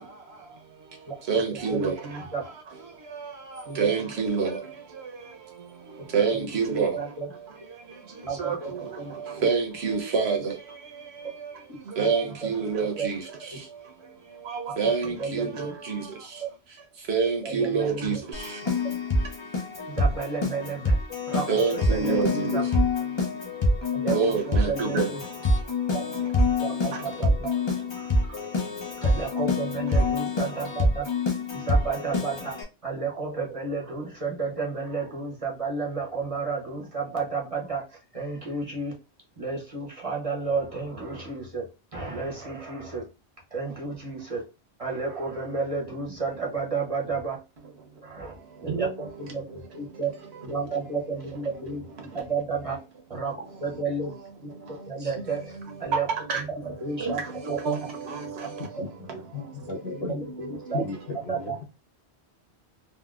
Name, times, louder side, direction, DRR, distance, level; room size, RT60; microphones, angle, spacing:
voice 1, 1.3-1.9 3.8-4.5 6.1-6.9 8.4-8.6 9.4-10.5 12.0-13.2 14.5-16.0 17.1-18.2 21.5-22.6 24.1-25.1 48.7-48.9 56.3-56.4 57.0-57.1 57.6-57.8 58.1-58.2, right 5 dB, 70° right, 1.0 m, -26 dB
voice 2, 6.4-7.3 8.2-8.7 9.0-9.1 13.0-13.1 14.8-14.9 15.2-15.7 17.4-18.2 20.0-21.0 21.3-21.5 21.9-22.6 23.9-25.0 26.6-27.5 29.0-31.0 31.5-32.6 32.8-37.8 38.1-38.9 39.4-41.6 41.9-43.0 43.5-44.4 44.8-47.4 48.0-48.3 48.6-50.1 50.4-51.8 52.1-52.8 53.1-53.4 53.6-54.1 54.4-54.5 54.9-55.5 55.8-56.0 56.8-57.2 59.9-60.8 61.3-61.6, right 4 dB, 35° right, 0.8 m, -31 dB
Keyboard (musical), 18.3-32.6, left 2 dB, 30° left, 0.6 m, -26 dB
voice 3, 58.6-60.2 60.7-61.6, left 3 dB, 65° left, 1.3 m, -35 dB
3.6 x 2.3 x 2.3 m
omnidirectional pair, 1.1 m